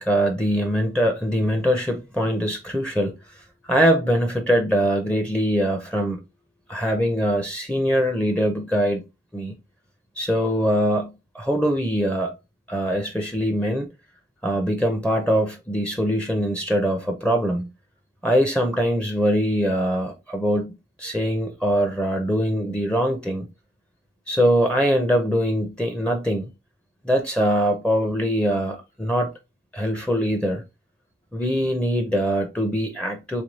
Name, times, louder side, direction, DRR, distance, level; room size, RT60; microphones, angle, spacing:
voice 1, 0.0-3.1 3.6-6.2 6.7-9.0 9.3-9.5 10.2-12.3 12.7-13.9 14.4-17.7 18.2-23.5 24.3-26.5 27.0-29.3 29.7-30.6 31.3-33.4, equal, 5° left, 0.6 m, -22 dB
3.4 x 3.1 x 3.9 m
head